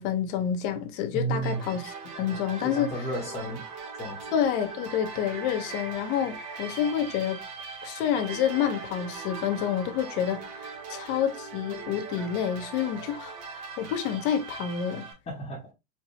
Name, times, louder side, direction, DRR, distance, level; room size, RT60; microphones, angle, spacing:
voice 1, 0.0-2.9 4.3-7.4 7.8-15.0, left 9 dB, 50° left, 0.9 m, -28 dB
voice 2, 1.1-1.8 2.6-3.7 3.9-4.2 15.3-15.7, right 2 dB, 15° left, 1.0 m, -32 dB
sound 1, 1.4-15.1, right 5 dB, 40° right, 1.5 m, -40 dB
4.4 x 2.3 x 3.0 m
supercardioid pair, 140°, 41 cm